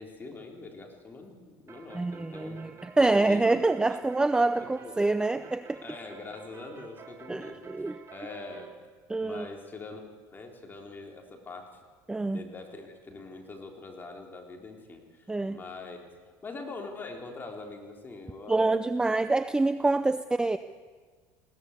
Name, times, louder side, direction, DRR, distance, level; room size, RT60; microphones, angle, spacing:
voice 1, 0.0-2.6 3.0-3.4 3.9-4.0 4.8-4.9 5.8-8.7 9.2-10.0 10.3-11.8 12.3-16.0 16.4-19.1, left 3 dB, 20° left, 2 dB, 3.8 m, -43 dB
sound 1, 1.7-8.7, right 6 dB, 35° right, 2.4 m, -50 dB
voice 2, 1.9-5.8 7.3-8.0 9.1-9.5 12.1-12.4 15.3-15.6 18.5-20.6, right 2 dB, 10° right, 11 dB, 0.6 m, -26 dB
20.5 x 17.5 x 8.3 m, 1.5 s
cardioid pair, 125°, 9 cm